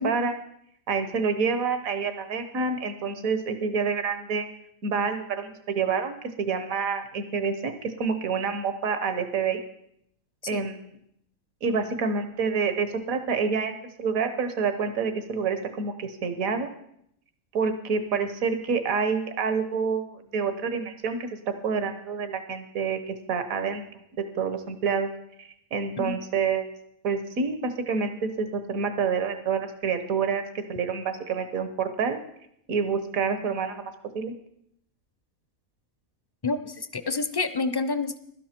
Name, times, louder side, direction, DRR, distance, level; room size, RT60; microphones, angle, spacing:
voice 1, 0.0-0.3 0.9-4.5 4.8-9.6 10.5-10.8 11.6-16.7 17.5-25.1 25.4-26.7 27.0-30.4 30.7-32.2 32.7-34.3, right 5 dB, 85° right, 8 dB, 1.6 m, -28 dB
voice 2, 36.4-38.2, left 3 dB, 35° left, 11 dB, 0.3 m, -28 dB
16.5 x 12.5 x 4.4 m, 0.71 s
omnidirectional pair, 1.4 m